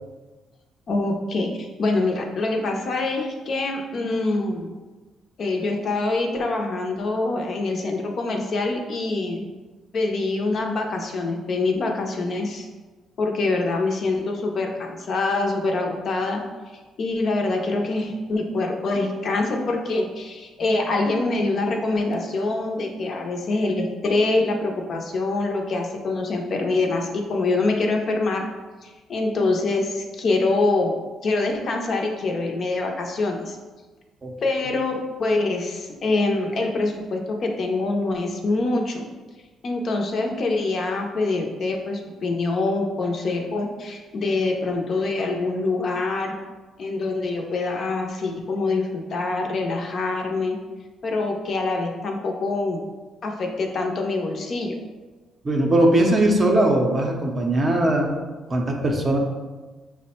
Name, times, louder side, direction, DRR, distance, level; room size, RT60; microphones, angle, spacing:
voice 1, 0.9-4.7 5.4-9.4 9.9-12.7 13.2-16.4 17.0-28.5 28.8-33.6 34.4-39.1 39.6-46.4 46.8-50.6 51.0-52.8 53.2-54.8, left 2 dB, 40° left, 2 dB, 0.5 m, -25 dB
voice 2, 55.4-58.2 58.5-59.2, right 1 dB, 25° right, 1 dB, 0.6 m, -20 dB
6.0 x 2.1 x 4.2 m, 1.3 s
cardioid pair, 165°, 0 cm